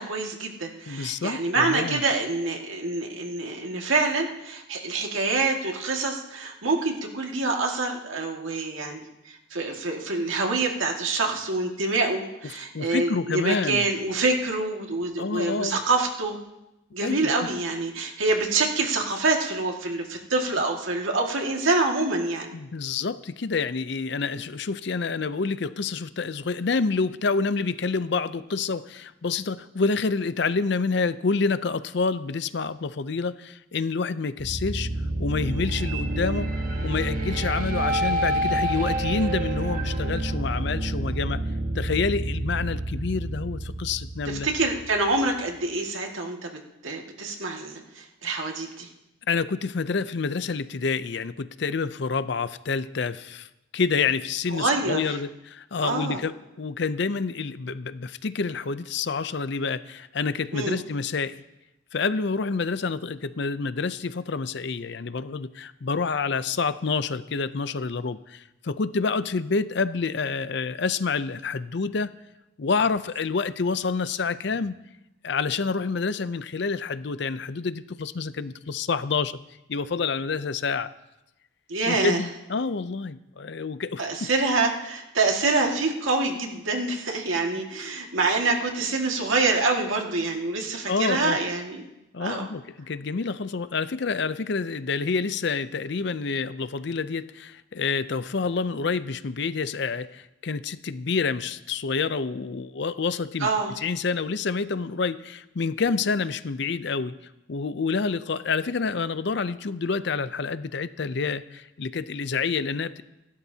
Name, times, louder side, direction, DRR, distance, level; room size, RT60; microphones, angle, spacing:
voice 1, 0.0-16.4 16.9-22.5 44.3-48.9 54.5-55.2 55.8-56.2 60.5-60.8 81.7-82.2 84.0-91.8 92.2-92.5 103.4-103.7, right 3 dB, 80° right, 1 dB, 2.0 m, -26 dB
voice 2, 0.9-2.0 12.7-13.9 15.2-15.8 17.0-17.5 22.5-34.9 35.2-41.4 41.7-44.5 49.3-53.5 53.7-61.4 61.9-72.2 72.6-74.8 75.2-79.4 79.7-80.9 81.8-84.0 90.9-91.4 92.1-103.5 103.8-107.1 107.5-113.0, left 4 dB, 55° left, 14 dB, 0.5 m, -28 dB
sound 1, 34.4-45.3, right 1 dB, 40° right, 1.4 m, -28 dB
27.5 x 12.5 x 2.8 m, 0.94 s
head